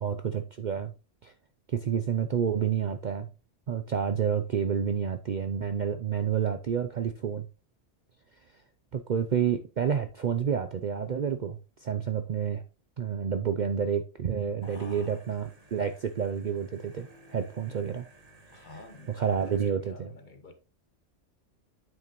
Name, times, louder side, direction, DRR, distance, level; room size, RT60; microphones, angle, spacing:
voice 1, 0.0-0.9 1.2-1.3 1.7-3.3 3.7-7.5 8.9-12.6 13.0-18.1 19.2-20.1, right 7 dB, 50° right, 0.6 m, -29 dB
voice 2, 14.6-15.4 18.5-20.5, left 3 dB, 40° left, 1.2 m, -49 dB
sound 1, 14.6-19.7, right 2 dB, 35° right, 1.4 m, -56 dB
8.9 x 6.3 x 3.0 m
omnidirectional pair, 1.2 m